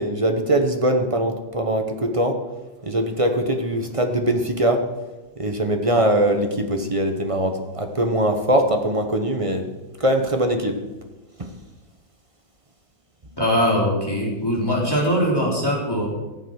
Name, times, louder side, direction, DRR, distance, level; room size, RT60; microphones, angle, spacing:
voice 1, 0.0-2.4 2.8-4.9 5.4-9.7 10.0-10.8 11.4-11.5, right 1 dB, 30° right, 5 dB, 0.5 m, -22 dB
voice 2, 13.4-16.1, equal, 10° left, -4 dB, 3.4 m, -21 dB
14.5 x 8.0 x 6.4 m, 1.1 s
omnidirectional pair, 2.2 m